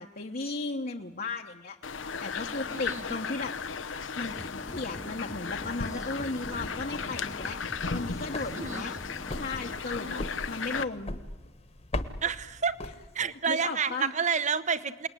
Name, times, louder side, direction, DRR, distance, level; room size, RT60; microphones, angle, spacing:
voice 1, 0.0-1.8 2.2-3.5 4.2-7.6 7.9-8.9 9.3-10.2 10.5-11.2 13.5-14.1, left 3 dB, 50° left, 1 dB, 1.1 m, -35 dB
sound 1, 1.8-10.8, left 5 dB, 90° left, 1.0 m, -36 dB
voice 2, 2.7-3.0 8.6-8.8 10.0-10.2 12.2-12.8 13.1-15.1, right 6 dB, 40° right, 13 dB, 1.1 m, -29 dB
sound 2, 4.2-9.8, left 1 dB, 20° left, 0.9 m, -44 dB
sound 3, 7.2-13.5, left 1 dB, 35° left, 1.4 m, -40 dB
28.5 x 20.0 x 10.0 m, 1.2 s
head